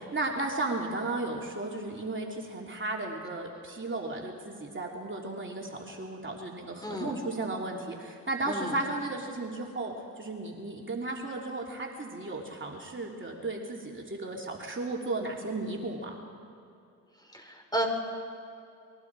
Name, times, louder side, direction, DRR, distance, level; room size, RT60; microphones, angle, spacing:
voice 1, 0.1-16.2, right 2 dB, 30° right, -1 dB, 3.2 m, -34 dB
voice 2, 6.8-7.2 8.4-8.8 17.3-17.9, right 1 dB, 10° left, 3 dB, 4.6 m, -32 dB
28.0 x 22.0 x 4.8 m, 2.6 s
supercardioid pair, 50°, 36 cm